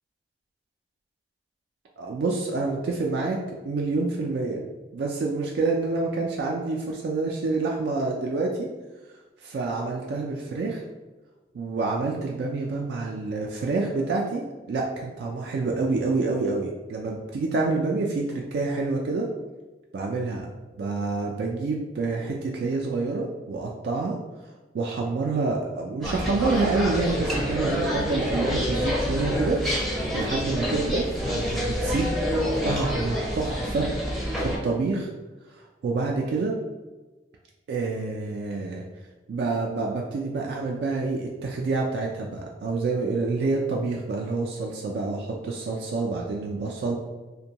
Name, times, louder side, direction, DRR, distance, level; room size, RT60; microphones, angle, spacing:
voice 1, 2.0-3.4 3.6-4.6 4.9-8.7 9.4-10.8 11.5-19.3 19.9-20.5 20.8-24.2 24.7-29.6 30.1-32.1 32.6-33.9 34.4-35.1 35.5-36.6 37.7-38.8 39.3-47.0, right 3 dB, 65° right, -1 dB, 0.3 m, -27 dB
sound 1, 26.0-34.6, equal, ahead, 0.5 m, -27 dB
2.6 x 2.2 x 2.8 m, 1.2 s
head